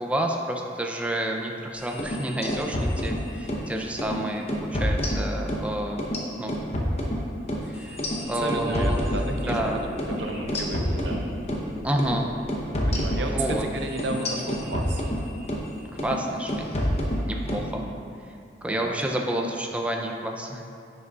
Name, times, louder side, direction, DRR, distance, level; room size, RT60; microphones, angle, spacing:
voice 1, 0.0-6.1 6.4-6.6 7.7-8.0 8.3-9.8 11.8-12.3 13.2-13.6 16.0-16.7 17.3-17.8 18.6-20.6, right 1 dB, 5° right, 1 dB, 0.4 m, -29 dB
sound 1, 1.9-3.7 4.0-4.2 4.5-5.7 6.0-9.7 10.0-10.2 10.5-11.7 12.0-12.2 12.5-15.7 16.0-16.2 16.5-17.7, equal, 35° left, 0.8 m, -28 dB
sound 2, 8.2-13.6, equal, 30° right, 1.2 m, -39 dB
voice 2, 8.3-11.2 12.9-15.0 17.3-18.0 18.7-19.0 19.3-19.5, right 2 dB, 80° right, 3 dB, 0.6 m, -33 dB
10.5 x 6.4 x 2.4 m, 2.4 s
head